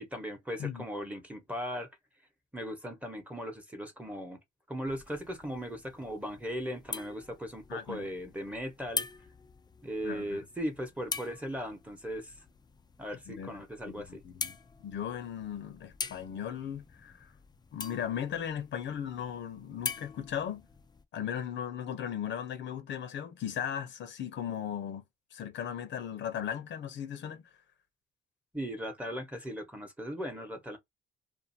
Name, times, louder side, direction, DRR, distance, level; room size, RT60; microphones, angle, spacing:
voice 1, 0.0-1.9 2.5-4.4 4.7-9.1 9.8-12.3 13.0-14.2 28.5-30.8, equal, 5° right, 1.0 m, -38 dB
sound 1, 4.9-21.0, left 4 dB, 20° left, 0.4 m, -44 dB
voice 2, 7.7-8.1 10.0-10.4 13.3-14.6 14.8-17.3 17.7-20.7 21.1-25.0 25.3-27.4, left 9 dB, 70° left, 0.8 m, -37 dB
2.6 x 2.5 x 2.6 m
cardioid pair, 90°, 20 cm